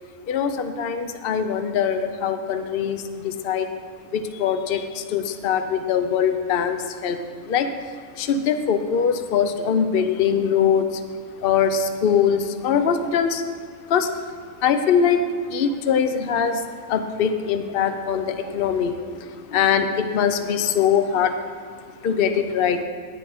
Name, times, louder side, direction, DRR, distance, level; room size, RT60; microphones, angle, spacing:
voice 1, 0.3-3.7 4.1-7.2 7.4-7.7 8.2-10.8 11.4-13.4 13.9-14.1 14.6-15.2 15.5-16.6 16.9-18.9 19.2-21.3 22.0-22.8, left 7 dB, 50° left, 8 dB, 0.8 m, -22 dB
10.0 x 9.8 x 5.0 m, 2.2 s
omnidirectional pair, 1.5 m